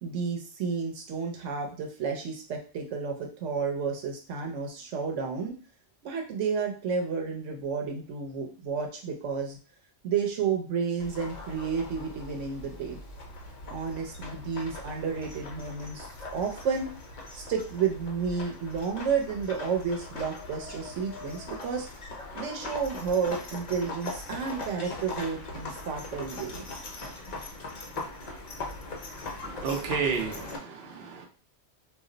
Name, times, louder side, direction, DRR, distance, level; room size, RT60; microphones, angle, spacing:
voice 1, 0.0-5.5 6.0-9.6 10.0-13.0 13.7-16.9 17.3-21.9 22.3-26.7, right 6 dB, 90° right, 1 dB, 1.0 m, -31 dB
sound 1, 11.0-30.6, left 2 dB, 45° left, 0.6 m, -40 dB
voice 2, 29.4-31.3, right 6 dB, 65° right, 3 dB, 0.8 m, -31 dB
2.4 x 2.0 x 3.7 m, 0.38 s
omnidirectional pair, 1.2 m